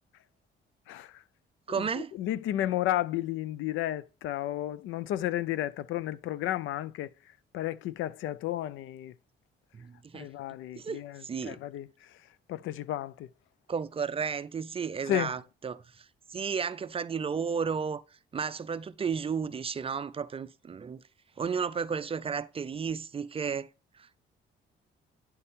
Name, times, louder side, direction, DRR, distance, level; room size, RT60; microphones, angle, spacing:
voice 1, 0.9-1.2 1.7-7.1 7.5-9.1 10.1-12.2 12.5-13.3 15.0-15.3, left 13 dB, 85° left, 0.4 m, -33 dB
voice 2, 1.7-2.1 9.7-10.3 10.8-11.6 13.7-18.0 18.3-21.0 21.4-23.7 23.9-24.3, right 6 dB, 30° right, 0.4 m, -33 dB
9.5 x 4.2 x 3.6 m
cardioid pair, 90°, 20 cm